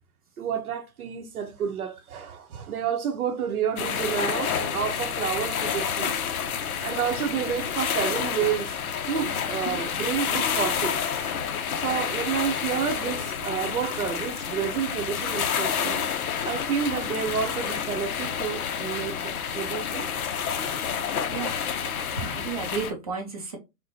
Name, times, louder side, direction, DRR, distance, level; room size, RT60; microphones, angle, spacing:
voice 1, 0.4-6.2 6.8-8.8 9.1-11.0 11.8-16.0 16.4-20.1, right 7 dB, 65° right, 0.7 m, -30 dB
sound 1, 3.8-22.9, left 7 dB, 60° left, 0.7 m, -29 dB
voice 2, 22.1-23.6, right 4 dB, 25° right, 0.5 m, -32 dB
4.2 x 2.1 x 2.5 m
hypercardioid pair, 155°, 49 cm